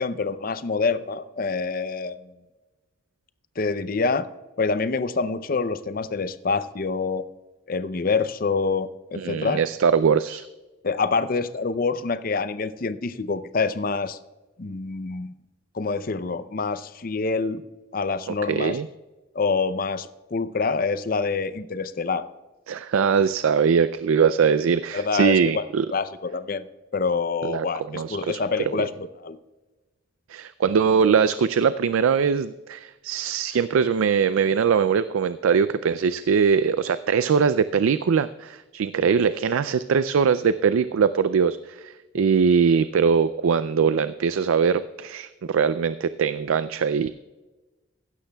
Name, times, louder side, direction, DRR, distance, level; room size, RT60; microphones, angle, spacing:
voice 1, 0.0-2.3 3.6-4.3 4.6-7.2 7.7-9.6 10.8-14.2 14.6-15.3 15.7-17.6 17.9-18.8 19.3-22.3 24.9-25.6 25.9-26.7 26.9-29.4 39.0-39.1 42.1-42.3, left 4 dB, 45° left, 12 dB, 0.5 m, -26 dB
voice 2, 9.2-10.5 18.5-18.9 22.7-25.9 27.4-27.6 27.9-28.4 28.8-28.9 30.3-47.1, right 6 dB, 80° right, 14 dB, 0.4 m, -21 dB
16.0 x 12.0 x 2.3 m, 1.1 s
head